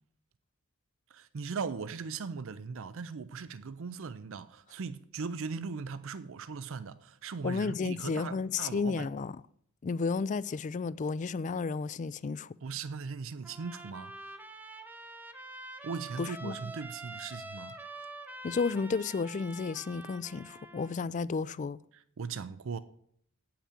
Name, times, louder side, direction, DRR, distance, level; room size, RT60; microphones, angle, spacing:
voice 1, 1.1-9.1 12.6-14.1 15.8-18.1 21.9-22.8, right 5 dB, 65° right, 0.5 m, -39 dB
voice 2, 7.4-9.3 9.8-12.5 16.2-16.5 18.4-21.8, left 4 dB, 35° left, 0.3 m, -32 dB
Trumpet, 13.4-21.0, right 2 dB, 10° right, 0.8 m, -46 dB
8.6 x 5.8 x 8.2 m
head